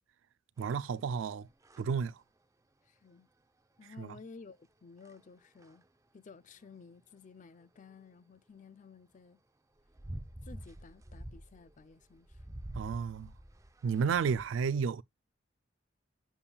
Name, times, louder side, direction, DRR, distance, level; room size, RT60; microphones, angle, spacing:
sound 1, 0.6-0.9 1.5-1.8 5.0-5.2 5.6-5.8 9.8-14.5, right 1 dB, 15° right, 0.6 m, -47 dB
voice 1, 0.6-1.5 1.8-2.1 4.0-4.1 12.8-13.3 13.8-15.0, right 6 dB, 75° right, 0.3 m, -31 dB
voice 2, 2.9-3.3 3.8-5.9 6.1-9.4 10.4-12.4, left 4 dB, 40° left, 0.5 m, -54 dB
7.1 x 6.9 x 2.3 m
head